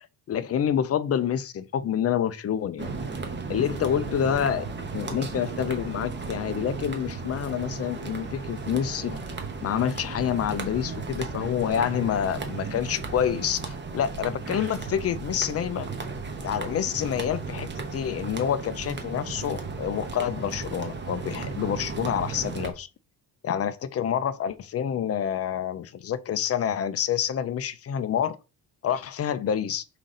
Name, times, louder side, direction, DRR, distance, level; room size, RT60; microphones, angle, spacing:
voice 1, 0.3-2.9 3.5-4.6 4.9-9.2 9.6-15.9 16.4-22.9 23.4-28.4 28.8-29.8, left 9 dB, 35° left, 0.5 m, -27 dB
sound 1, 2.8-22.7, right 4 dB, 25° right, 1.1 m, -35 dB
5.7 x 5.1 x 3.8 m
cardioid pair, 165°, 41 cm